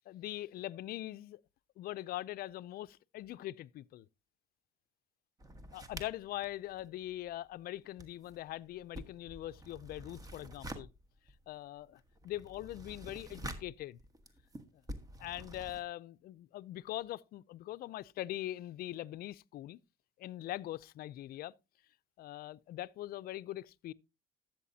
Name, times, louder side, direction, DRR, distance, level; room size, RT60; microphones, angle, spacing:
voice 1, 0.1-1.4 1.8-4.1 5.7-10.9 11.5-14.0 15.2-19.8 20.2-21.5 22.2-23.9, left 14 dB, 65° left, 0.4 m, -42 dB
sound 1, 5.4-7.6 7.8-15.8, right 1 dB, 20° right, 1.3 m, -49 dB
12.5 x 7.8 x 2.7 m
cardioid pair, 110°, 17 cm